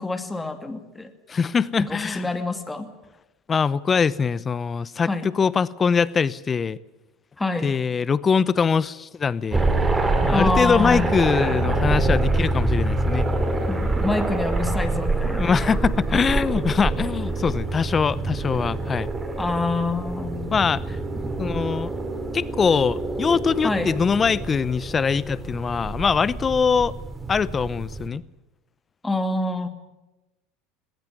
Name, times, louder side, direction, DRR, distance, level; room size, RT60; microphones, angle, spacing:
voice 1, 0.0-1.1 1.8-2.9 5.0-5.3 7.4-7.7 10.3-11.0 13.7-15.5 19.4-20.5 23.6-23.9 29.0-29.7, left 2 dB, 10° left, 8 dB, 2.5 m, -26 dB
voice 2, 1.3-2.3 3.5-6.8 7.6-9.7 10.2-13.3 15.3-19.1 20.5-20.8 21.4-21.9 22.3-26.9 27.3-28.2, left 6 dB, 25° left, 20 dB, 0.8 m, -22 dB
sound 1, 9.5-28.1, right 2 dB, 15° right, 3.5 m, -26 dB
19.5 x 18.5 x 9.7 m, 0.99 s
hypercardioid pair, 95°, 0 cm